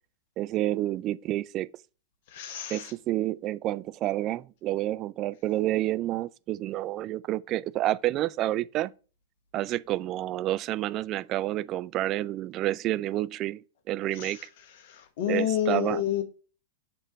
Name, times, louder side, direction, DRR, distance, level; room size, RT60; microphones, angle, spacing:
voice 1, 0.4-1.7 2.7-8.9 9.5-14.4 15.3-16.0, right 15 dB, 40° right, 0.3 m, -29 dB
voice 2, 2.3-2.9 14.1-14.5 14.8-16.2, left 11 dB, 55° left, 1.1 m, -29 dB
6.8 x 3.8 x 5.2 m
figure-of-eight pair, 100°, 0 cm